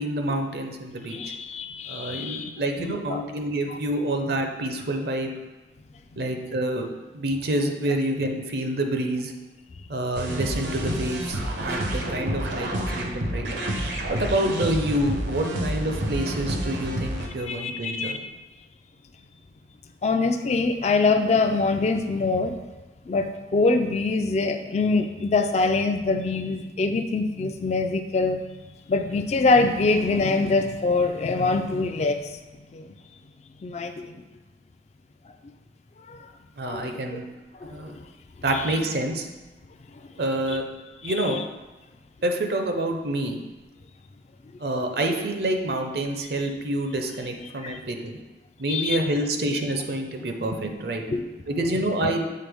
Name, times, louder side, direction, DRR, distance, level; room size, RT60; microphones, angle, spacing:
voice 1, 0.0-1.2 1.9-5.3 6.2-6.9 7.1-9.3 9.9-13.5 14.1-18.2 36.6-37.3 37.6-38.0 38.4-39.3 40.2-40.6 41.0-41.4 42.2-43.4 44.6-48.2 48.6-51.0 51.5-52.2, right 1 dB, 60° right, 4 dB, 0.6 m, -27 dB
voice 2, 1.1-2.5 2.8-3.2 3.7-3.8 17.5-18.2 20.0-22.5 23.1-28.4 28.9-32.2 32.7-32.9 33.6-34.1 36.1-36.2 36.6-37.2 37.6-37.8 38.5-38.8 40.5-40.6 41.0-41.4 47.6-47.8 48.7-49.0 51.1-51.3 52.0-52.1, left 3 dB, 40° left, 7 dB, 0.3 m, -24 dB
sound 1, 10.1-17.3, right 1 dB, 85° right, 0.9 m, -29 dB
7.6 x 3.8 x 3.5 m, 1.1 s
head